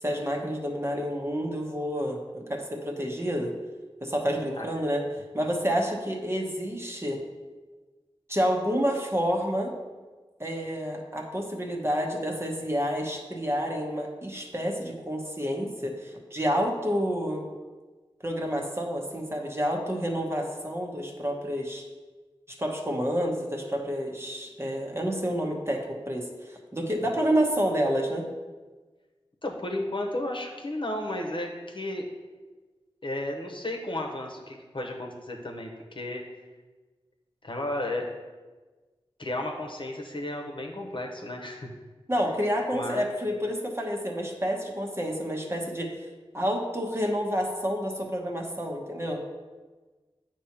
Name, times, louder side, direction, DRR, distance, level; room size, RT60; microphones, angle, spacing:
voice 1, 0.0-3.5 4.0-5.0 5.3-7.2 8.3-9.7 10.4-17.5 18.2-21.8 22.5-28.2 42.1-45.9 46.3-49.2, equal, 25° right, 0 dB, 1.0 m, -29 dB
voice 2, 29.4-32.1 33.0-36.2 37.4-38.1 39.2-41.7 42.7-43.0, left 1 dB, 55° left, 2 dB, 1.0 m, -33 dB
8.3 x 3.0 x 5.8 m, 1.3 s
wide cardioid pair, 60°, 10 cm